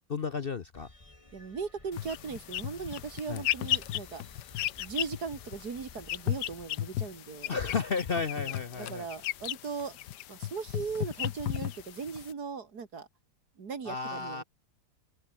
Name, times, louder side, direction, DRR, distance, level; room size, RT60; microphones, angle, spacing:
voice 1, 0.1-0.9 3.3-3.4 7.5-9.1 13.9-14.4, left 5 dB, 45° left, 0.8 m, -33 dB
sound 1, 0.7-7.3, left 2 dB, 20° left, 2.7 m, -55 dB
voice 2, 1.3-4.2 4.8-7.6 8.4-8.5 8.8-10.0 10.3-13.1 13.6-14.4, right 5 dB, 70° right, 2.7 m, -38 dB
sound 2, 1.9-12.3, left 13 dB, 90° left, 1.4 m, -36 dB
open air
omnidirectional pair, 1.8 m